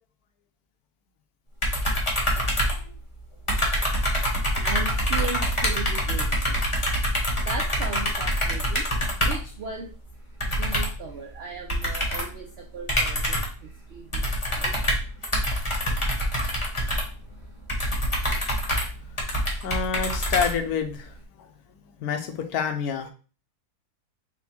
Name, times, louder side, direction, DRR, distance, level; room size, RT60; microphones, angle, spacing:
sound 1, 1.6-3.2 3.5-9.5 10.4-11.1 11.7-12.4 12.9-13.6 14.1-21.0, equal, 25° left, 0.8 m, -25 dB
voice 1, 4.6-6.7 7.4-9.9 10.4-14.7, right 4 dB, 85° right, 1 dB, 0.5 m, -37 dB
voice 2, 19.2-23.1, left 6 dB, 70° left, 6 dB, 1.1 m, -29 dB
4.3 x 2.2 x 4.2 m, 0.37 s
omnidirectional pair, 1.7 m